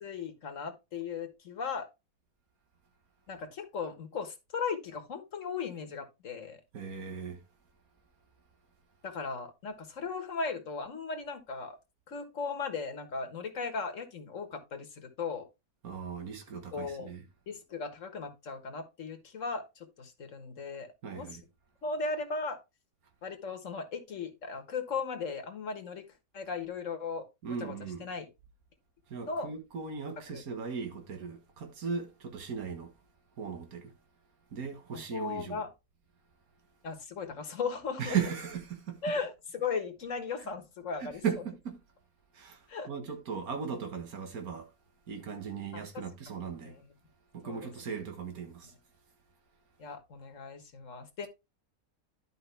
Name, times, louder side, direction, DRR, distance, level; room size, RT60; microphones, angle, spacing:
voice 1, 0.0-1.9 3.3-6.6 9.0-11.8 12.1-15.5 16.7-17.1 17.5-21.3 21.8-22.6 23.2-26.0 26.3-27.3 27.6-27.7 28.0-28.3 29.3-29.5 30.3-30.4 34.9-35.7 36.8-38.2 39.0-41.2 42.7-42.9 45.7-45.8 46.6-46.9 47.4-47.7 49.8-51.3, left 5 dB, 60° left, 1.8 m, -37 dB
voice 2, 6.7-7.4 15.8-17.2 21.0-21.4 27.4-28.1 29.1-32.9 33.4-33.9 34.5-35.6 38.0-39.0 40.4-40.5 41.0-41.8 42.3-44.7 45.1-46.8 47.3-48.7, right 6 dB, 80° right, 1.9 m, -37 dB
11.5 x 5.2 x 3.3 m
omnidirectional pair, 1.5 m